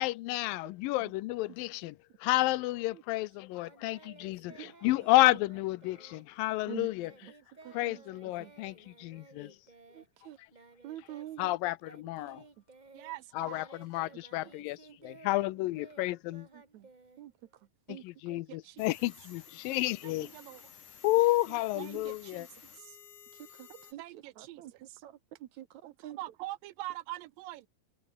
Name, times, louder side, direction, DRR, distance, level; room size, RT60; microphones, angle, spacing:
voice 1, 0.0-7.1 7.7-9.6 11.4-12.4 13.4-16.5 17.9-20.3 21.0-22.5, left 18 dB, 80° left, 2.4 m, -31 dB
Singing, 3.6-11.5 11.8-17.7, right 3 dB, 40° right, 0.6 m, -56 dB
voice 2, 4.6-4.9 6.7-6.9 7.2-7.3 7.6-8.0 8.4-8.5 9.9-10.4 10.8-11.5 16.7-16.9 17.2-17.3 17.9-18.0 21.5-22.0 23.5-24.0 24.4-26.2, right 13 dB, 70° right, 1.9 m, -46 dB
voice 3, 12.9-13.7 18.3-18.8 20.0-20.6 21.8-22.5 22.7-23.0 23.7-25.0 25.8-27.7, right 17 dB, 85° right, 2.3 m, -44 dB
sound 1, 18.8-23.9, left 8 dB, 60° left, 4.1 m, -54 dB
omnidirectional pair, 4.1 m